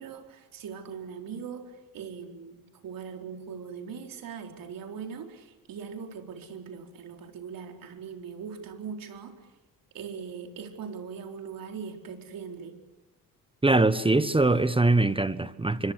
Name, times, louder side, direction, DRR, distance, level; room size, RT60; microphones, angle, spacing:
voice 1, 0.0-9.5 9.9-12.8, right 6 dB, 70° right, 4.4 m, -40 dB
voice 2, 13.6-15.9, right 2 dB, 15° right, 1.2 m, -22 dB
25.0 x 24.0 x 8.2 m
cardioid pair, 75°, 35 cm